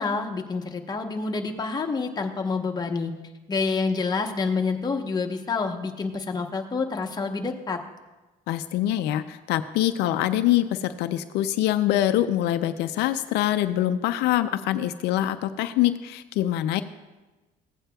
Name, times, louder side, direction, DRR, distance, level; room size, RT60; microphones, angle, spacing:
voice 1, 0.0-3.1 3.5-7.8, left 4 dB, 25° left, 3 dB, 0.9 m, -28 dB
voice 2, 8.5-16.8, left 13 dB, 85° left, 10 dB, 0.4 m, -24 dB
15.5 x 8.8 x 2.3 m, 1.1 s
cardioid pair, 110°, 17 cm